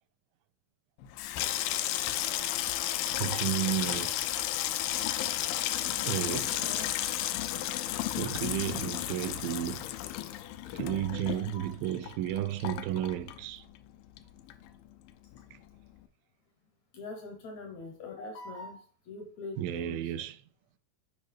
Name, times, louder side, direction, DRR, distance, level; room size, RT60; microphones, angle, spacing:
Water tap faucet / Sink (filling or washing), 1.0-13.9 14.2-14.8 15.1-15.4, left 13 dB, 85° left, 2.4 m, -33 dB
voice 1, 3.1-4.2 6.0-6.7 7.8-9.9 10.7-13.6 15.5-15.6 19.6-20.4, right 11 dB, 85° right, 2.3 m, -33 dB
voice 2, 6.5-6.9 11.1-11.7 16.9-20.0, left 3 dB, 70° left, 1.8 m, -43 dB
8.3 x 5.2 x 3.3 m
omnidirectional pair, 4.0 m